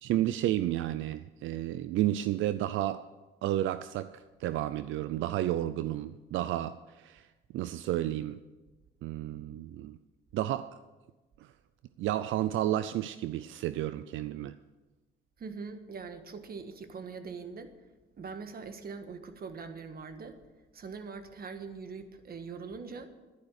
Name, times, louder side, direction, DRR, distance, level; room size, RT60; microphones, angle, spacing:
voice 1, 0.0-3.0 3.4-7.3 7.5-8.4 9.0-10.0 10.3-10.8 11.4-11.5 12.0-14.6, right 13 dB, 80° right, 0.4 m, -31 dB
voice 2, 15.4-17.7 18.2-20.4 20.7-23.1, right 5 dB, 50° right, 1.5 m, -42 dB
11.5 x 10.5 x 6.5 m
cardioid pair, 90°, 20 cm